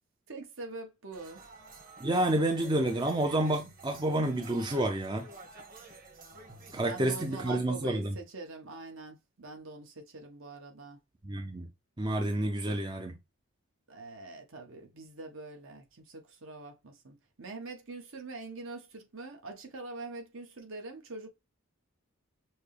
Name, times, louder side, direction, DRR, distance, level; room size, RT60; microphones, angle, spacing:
voice 1, 0.3-1.4 6.7-11.0 13.9-21.3, right 3 dB, 65° right, 1.3 m, -44 dB
sound 1, 1.1-7.5, right 3 dB, 40° right, 1.4 m, -50 dB
voice 2, 2.0-5.3 6.7-8.2 11.2-11.7 12.0-13.2, right 1 dB, 20° right, 0.5 m, -29 dB
6.3 x 2.2 x 3.2 m
head